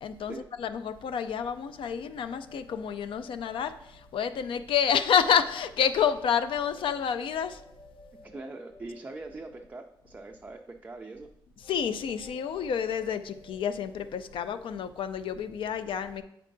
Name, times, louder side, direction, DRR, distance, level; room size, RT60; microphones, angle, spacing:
voice 1, 0.0-7.6 11.6-16.2, left 7 dB, 85° left, 11 dB, 0.4 m, -29 dB
sound 1, 2.3-5.0 6.3-10.3 11.6-14.7, left 2 dB, 50° left, 1.0 m, -54 dB
voice 2, 8.2-11.3, right 2 dB, 20° right, 3 dB, 0.3 m, -42 dB
8.3 x 4.5 x 2.6 m, 0.78 s
wide cardioid pair, 155°, 9 cm